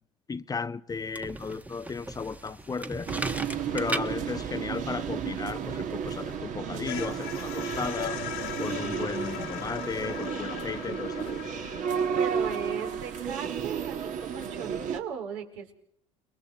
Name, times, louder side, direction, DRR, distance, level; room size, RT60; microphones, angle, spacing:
voice 1, 0.3-3.1 3.7-8.2 8.6-11.5, left 4 dB, 20° left, 0.8 m, -35 dB
sound 1, 0.9-6.4, right 1 dB, 10° right, 1.3 m, -38 dB
sound 2, 3.1-15.0, right 7 dB, 50° right, 2.2 m, -33 dB
sound 3, 6.1-15.0, left 15 dB, 75° left, 2.1 m, -41 dB
voice 2, 12.1-15.7, right 7 dB, 75° right, 4.5 m, -37 dB
29.5 x 21.5 x 4.5 m
hypercardioid pair, 75°, 16 cm